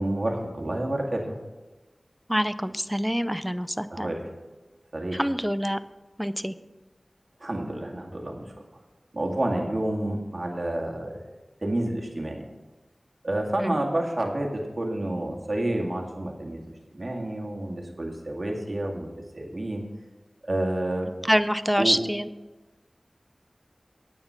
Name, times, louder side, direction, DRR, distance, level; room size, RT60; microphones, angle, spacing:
voice 1, 0.0-1.3 3.9-4.2 4.9-5.2 7.4-8.5 9.1-11.2 11.6-12.4 13.2-16.6 16.9-19.1 19.3-19.9 20.4-21.1 21.8-22.0, right 1 dB, 50° right, 1 dB, 2.1 m, -29 dB
voice 2, 2.3-4.1 5.1-5.8 6.2-6.5 13.6-13.8 21.2-22.3, equal, 5° right, 13 dB, 0.5 m, -26 dB
9.4 x 8.9 x 5.6 m, 1.1 s
wide cardioid pair, 45°, 0 cm